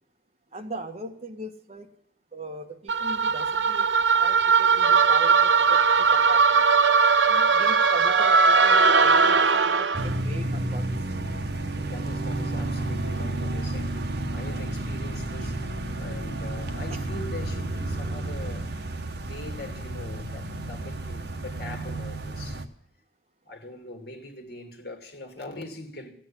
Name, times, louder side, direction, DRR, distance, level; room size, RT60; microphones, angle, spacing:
voice 1, 0.5-1.9 2.3-6.6 7.2-10.8 16.9-17.0, right 1 dB, 35° right, 1.7 m, -39 dB
sound 1, 2.9-10.1, right 5 dB, 85° right, 0.8 m, -19 dB
sound 2, 9.9-22.6, right 2 dB, 65° right, 1.1 m, -31 dB
voice 2, 11.7-18.8 19.2-22.7 23.4-26.1, left 2 dB, 55° left, 2.4 m, -42 dB
15.5 x 9.3 x 8.5 m
head